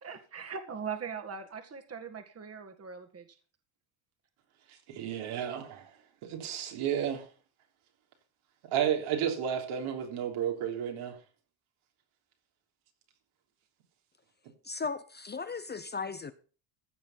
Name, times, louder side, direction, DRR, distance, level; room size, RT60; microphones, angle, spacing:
voice 1, 0.0-3.3, right 6 dB, 30° right, 1.8 m, -40 dB
voice 2, 4.9-5.9 6.2-7.3 8.7-11.2, right 9 dB, 75° right, 3.6 m, -32 dB
voice 3, 14.6-16.3, left 4 dB, 20° left, 0.7 m, -36 dB
15.0 x 6.7 x 5.6 m
cardioid pair, 105°, 49 cm